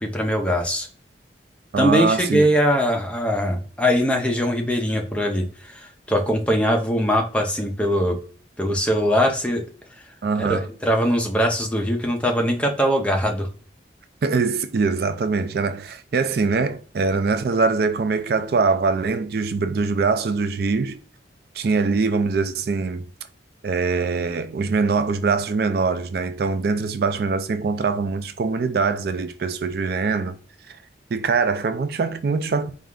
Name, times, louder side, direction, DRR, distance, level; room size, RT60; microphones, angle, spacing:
voice 1, 0.0-0.9 1.8-8.2 8.6-9.6 10.4-13.5, equal, 5° left, 0.6 m, -21 dB
voice 2, 1.7-2.5 10.2-10.7 14.2-21.0 21.5-23.1 23.6-30.4 31.1-32.8, right 4 dB, 55° right, 0.4 m, -23 dB
4.2 x 2.5 x 3.6 m
head